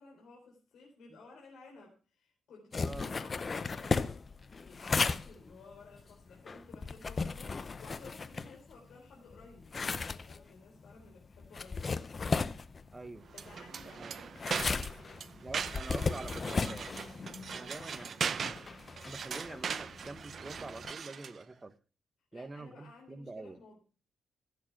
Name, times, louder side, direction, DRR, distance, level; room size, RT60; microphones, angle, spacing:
voice 1, 0.0-4.1 4.6-11.9 13.3-15.2 17.5-17.9 22.3-23.9, left 3 dB, 75° left, 3.7 m, -55 dB
sound 1, 2.7-8.9 9.3-20.9, left 4 dB, 30° left, 0.7 m, -36 dB
voice 2, 2.8-3.1 12.9-13.3 14.0-14.2 15.4-16.9 17.5-18.2 19.0-21.7 22.3-23.6, right 3 dB, 20° right, 1.1 m, -46 dB
sound 2, 13.3-21.4, right 6 dB, 50° right, 0.7 m, -39 dB
15.0 x 7.5 x 5.9 m
cardioid pair, 130°, 0 cm